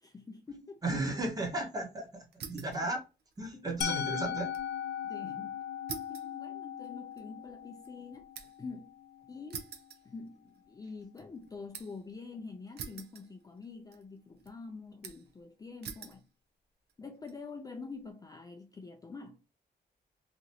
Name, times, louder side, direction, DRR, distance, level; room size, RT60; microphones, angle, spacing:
voice 1, 0.0-0.8 3.5-3.7 4.0-4.1 5.0-5.6 6.1-9.0 9.3-9.7 10.1-16.3 17.0-19.4, left 4 dB, 20° left, 0.3 m, -46 dB
voice 2, 0.8-3.0 3.4-4.5, right 2 dB, 20° right, 0.8 m, -34 dB
sound 1, 2.3-2.8 3.2-4.7 5.0-5.1 5.9-8.7 9.5-10.6 11.0-12.1 12.8-13.7 13.9-14.5 15.0-15.4 15.8-16.2 16.9-17.3, right 6 dB, 70° right, 0.5 m, -46 dB
Musical instrument, 3.8-9.7, left 9 dB, 80° left, 0.5 m, -39 dB
2.9 x 2.5 x 2.7 m
wide cardioid pair, 155°, 17 cm